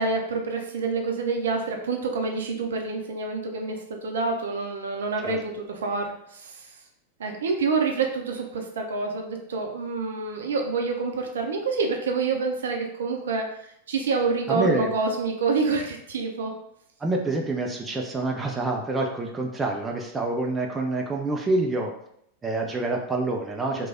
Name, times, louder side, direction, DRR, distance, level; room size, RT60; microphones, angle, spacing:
voice 1, 0.0-6.8 7.2-16.5, right 4 dB, 65° right, 2 dB, 0.6 m, -27 dB
voice 2, 14.5-14.9 17.0-21.9 22.4-23.9, right 2 dB, 15° right, 0 dB, 0.5 m, -27 dB
3.2 x 2.2 x 3.7 m, 0.74 s
figure-of-eight pair, 90°, 0 cm